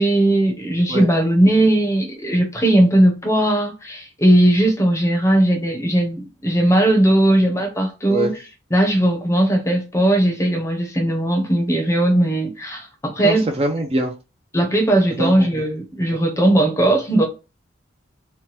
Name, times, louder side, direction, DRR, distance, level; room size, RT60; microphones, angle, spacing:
voice 1, 0.0-8.4 8.7-13.5 14.5-17.3, right 1 dB, 15° left, 0.6 m, -18 dB
voice 2, 13.2-14.1 15.2-15.3, right 1 dB, 30° right, 0.3 m, -22 dB
2.9 x 2.2 x 3.0 m
head